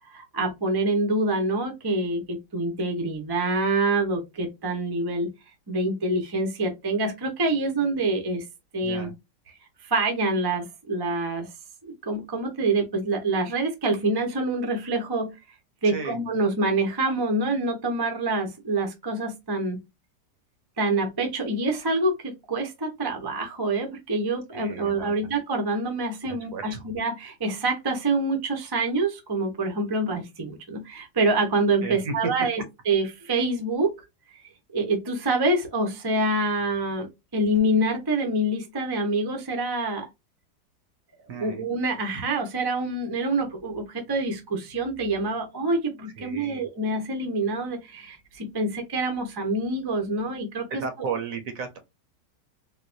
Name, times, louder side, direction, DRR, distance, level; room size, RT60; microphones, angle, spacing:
voice 1, 0.1-5.3 5.7-8.5 8.7-9.1 9.8-11.5 11.8-15.4 15.8-19.8 20.8-34.0 34.3-34.4 34.7-40.1 41.4-51.1, right 2 dB, 35° right, 0.3 m, -26 dB
voice 2, 15.8-16.2 24.5-25.2 26.2-26.9 31.8-32.1 41.3-41.6 46.2-46.7 50.7-51.8, right 5 dB, 65° right, 1.0 m, -34 dB
3.9 x 2.2 x 2.5 m
omnidirectional pair, 1.8 m